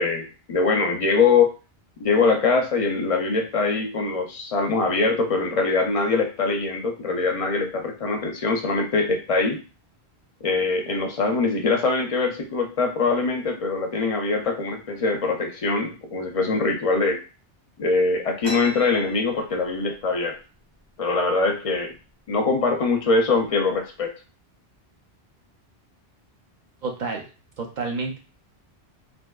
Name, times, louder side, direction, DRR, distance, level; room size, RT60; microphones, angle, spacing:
voice 1, 0.0-1.5 2.0-9.6 10.4-17.2 17.8-20.4 21.0-21.9 22.3-24.1, left 4 dB, 50° left, 2 dB, 0.4 m, -23 dB
sound 1, 18.4-20.0 20.4-20.5 20.7-21.3 21.9-22.1 22.8-23.0 23.4-23.9, left 1 dB, 75° right, 1.6 m, -39 dB
voice 2, 26.8-27.3 27.6-28.2, right 4 dB, 55° right, 1 dB, 0.6 m, -29 dB
3.4 x 2.5 x 2.3 m, 0.34 s
omnidirectional pair, 1.1 m